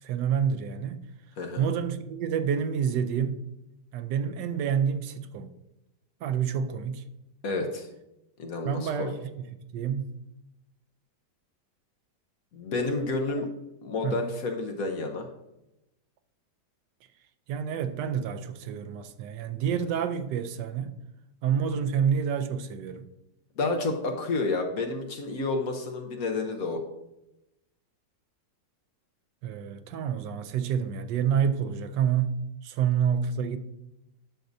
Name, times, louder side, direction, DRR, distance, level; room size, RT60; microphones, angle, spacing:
voice 1, 0.0-1.1 1.6-3.4 3.9-5.5 6.2-7.0 8.6-10.1 14.0-14.2 17.5-20.9 21.4-23.1 29.4-33.6, right 7 dB, 80° right, 1.3 m, -28 dB
voice 2, 7.4-7.9 8.4-9.1 12.5-13.5 13.8-15.3 23.6-26.8, left 3 dB, 60° left, 1.2 m, -30 dB
10.0 x 6.5 x 2.6 m
omnidirectional pair, 1.9 m